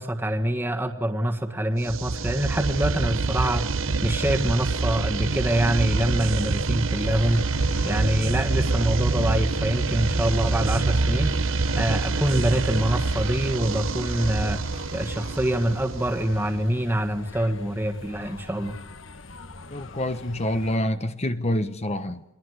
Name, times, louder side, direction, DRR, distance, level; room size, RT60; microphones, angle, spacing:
voice 1, 0.0-3.7 4.0-11.3 11.7-14.6 14.9-18.8, right 1 dB, 10° right, 1.6 m, -25 dB
sound 1, 1.8-16.6, right 3 dB, 65° right, 1.1 m, -26 dB
sound 2, 7.0-20.8, left 2 dB, 60° left, 1.4 m, -43 dB
voice 2, 19.7-22.2, left 1 dB, 30° left, 1.1 m, -27 dB
29.5 x 21.0 x 8.1 m
head